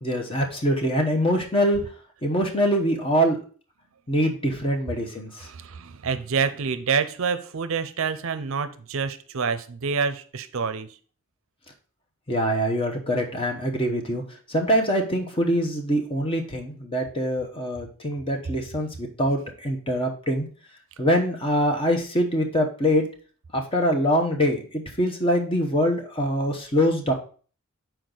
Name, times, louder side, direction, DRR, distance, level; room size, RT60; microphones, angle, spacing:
voice 1, 0.0-1.8 2.2-3.4 4.1-5.5 12.3-14.2 14.5-20.5 21.0-23.1 23.5-27.1, equal, 25° left, 2 dB, 0.9 m, -24 dB
voice 2, 5.4-10.9, right 5 dB, 65° right, 11 dB, 0.5 m, -27 dB
6.4 x 4.6 x 3.8 m, 0.41 s
head